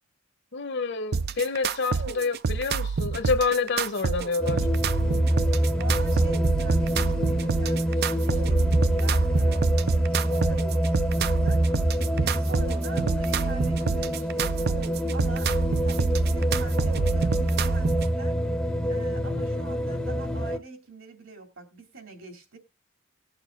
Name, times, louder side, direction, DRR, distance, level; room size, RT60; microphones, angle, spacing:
voice 1, 0.5-4.6, left 4 dB, 55° left, 0.8 m, -28 dB
sound 1, 1.1-18.1, right 5 dB, 50° right, 0.4 m, -28 dB
sound 2, 4.4-20.6, equal, 5° left, 0.6 m, -25 dB
voice 2, 5.7-11.9 12.2-14.7 15.1-18.4 18.9-22.6, right 3 dB, 70° right, 2.7 m, -44 dB
19.0 x 6.7 x 2.4 m
head